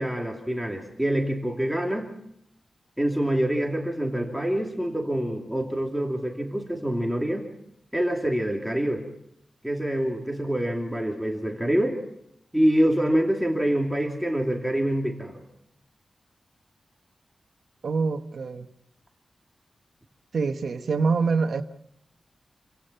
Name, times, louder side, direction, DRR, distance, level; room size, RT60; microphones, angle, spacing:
voice 1, 0.0-2.1 3.0-7.5 7.9-9.0 9.6-12.0 12.5-15.4, right 1 dB, ahead, 2.9 m, -26 dB
voice 2, 17.8-18.7 20.3-21.6, right 4 dB, 75° right, 1.4 m, -25 dB
28.0 x 16.5 x 5.7 m
wide cardioid pair, 145°, 0 cm